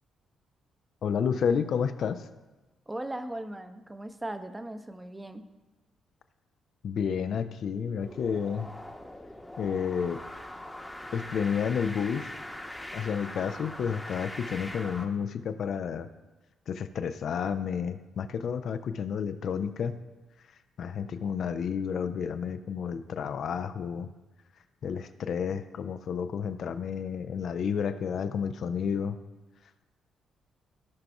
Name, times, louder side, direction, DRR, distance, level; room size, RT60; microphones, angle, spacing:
voice 1, 1.0-2.3 6.8-8.7 9.6-10.2 11.1-12.4 12.9-16.1 16.7-20.0 20.8-24.1 24.8-29.2, left 7 dB, 55° left, 10 dB, 0.3 m, -31 dB
voice 2, 2.9-5.5, right 1 dB, 15° right, 9 dB, 0.7 m, -38 dB
sound 1, 8.0-15.1, left 1 dB, 10° left, 0.9 m, -42 dB
14.5 x 5.7 x 2.3 m, 1.2 s
figure-of-eight pair, 40°, 0 cm